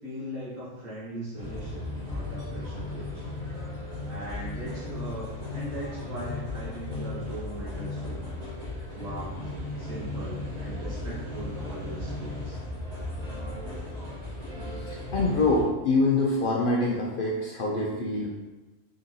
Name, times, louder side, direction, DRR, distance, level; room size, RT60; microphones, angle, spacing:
voice 1, 0.0-3.2 4.0-8.4 8.9-9.4 9.8-12.6, right 1 dB, 80° right, -10 dB, 1.5 m, -39 dB
sound 1, 1.4-15.6, left 2 dB, 30° right, 1.3 m, -36 dB
voice 2, 15.1-18.3, left 2 dB, 65° left, -3 dB, 0.5 m, -25 dB
3.8 x 3.7 x 2.8 m, 1.2 s
omnidirectional pair, 1.4 m